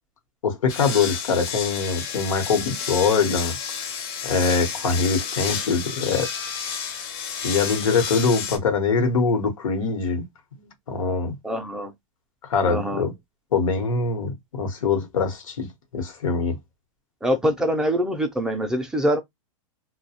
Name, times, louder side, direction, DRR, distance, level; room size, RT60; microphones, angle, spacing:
voice 1, 0.4-3.6 4.2-6.3 7.4-10.2 10.5-11.4 12.4-13.1 13.5-16.6, left 5 dB, 85° left, 0.9 m, -23 dB
sound 1, 0.7-8.6, left 7 dB, 45° left, 0.6 m, -31 dB
voice 2, 11.4-11.9 12.6-13.0 17.2-19.2, equal, 5° right, 0.4 m, -24 dB
2.3 x 2.1 x 2.7 m
hypercardioid pair, 145°, 17 cm